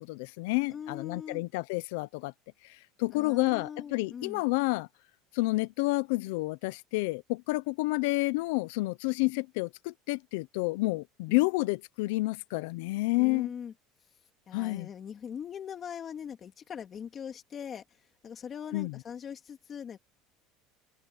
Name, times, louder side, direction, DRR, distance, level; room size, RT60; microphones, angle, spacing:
voice 1, 0.1-2.3 3.0-4.9 5.3-13.5 14.5-14.9 18.7-19.0, left 23 dB, 80° left, 0.7 m, -29 dB
voice 2, 0.7-1.4 3.1-4.4 11.3-11.4 13.2-13.7 14.5-17.8 18.2-20.0, left 8 dB, 35° left, 2.5 m, -41 dB
supercardioid pair, 125°, 0 cm